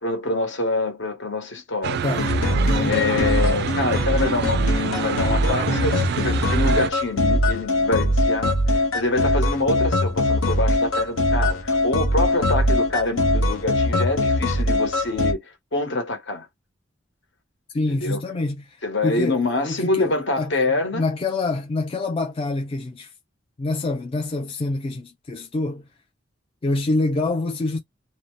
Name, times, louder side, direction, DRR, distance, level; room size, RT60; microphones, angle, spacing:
voice 1, 0.0-2.0 2.8-16.5 17.9-18.2 18.8-21.0, left 2 dB, 65° left, 1.1 m, -26 dB
sound 1, 1.8-6.9, right 7 dB, 55° right, 0.3 m, -27 dB
voice 2, 2.0-3.0 17.7-23.1 23.6-25.9 26.6-27.8, left 2 dB, 30° left, 0.3 m, -26 dB
sound 2, 2.2-15.3, left 1 dB, 85° left, 0.7 m, -22 dB
2.6 x 2.1 x 3.1 m
head